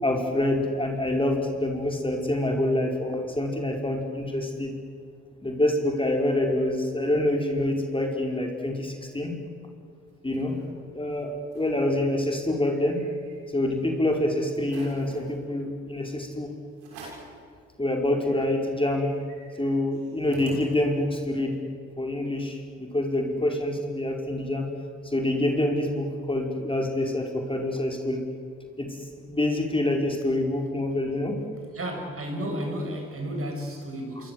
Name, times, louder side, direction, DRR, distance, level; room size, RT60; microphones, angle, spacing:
voice 1, 0.0-4.7 5.4-9.3 10.2-10.6 10.9-13.0 13.5-16.5 17.8-19.1 19.6-21.6 22.0-24.7 25.0-28.2 28.8-29.0 29.3-31.4, left 1 dB, 15° left, 5.1 m, -26 dB
sound 1, 9.8-10.7 11.1-11.2 11.4-11.8 12.2-13.8 14.2-14.3 14.6-15.3 16.0-16.2 16.8-17.4 17.8-17.9 18.1-21.2, right 3 dB, 85° right, 6.9 m, -47 dB
voice 2, 31.7-34.3, equal, 40° right, 7.7 m, -32 dB
27.5 x 23.0 x 7.9 m
hypercardioid pair, 50°, 35 cm